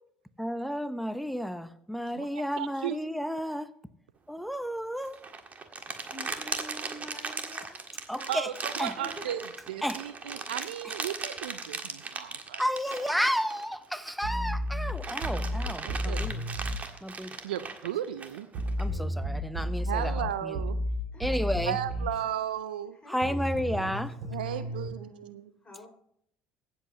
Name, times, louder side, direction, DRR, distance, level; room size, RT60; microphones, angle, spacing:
voice 1, 0.4-3.7 4.3-5.2 8.1-8.5 8.8-8.9 9.8-10.0 10.8-10.9 12.6-16.4 17.0-17.4 18.8-20.6 21.2-21.8 23.1-24.1, equal, ahead, 0.8 m, -32 dB
voice 2, 2.6-3.0 8.3-9.4 9.7-12.6 15.8-16.2 17.4-18.5 19.9-20.8 21.4-23.0 24.3-25.5, right 11 dB, 80° right, 0.5 m, -35 dB
sound 1, 5.0-14.3 14.7-18.8, right 4 dB, 30° right, 1.7 m, -38 dB
voice 3, 6.1-7.8 8.1-8.5 9.0-9.6 12.3-12.6 21.1-22.2 22.9-24.0 24.4-25.9, left 1 dB, 15° left, 5.3 m, -49 dB
sound 2, 14.2-16.8 18.5-22.2 23.2-24.9, equal, 65° right, 5.8 m, -32 dB
23.5 x 7.9 x 2.9 m
hypercardioid pair, 60°, 5 cm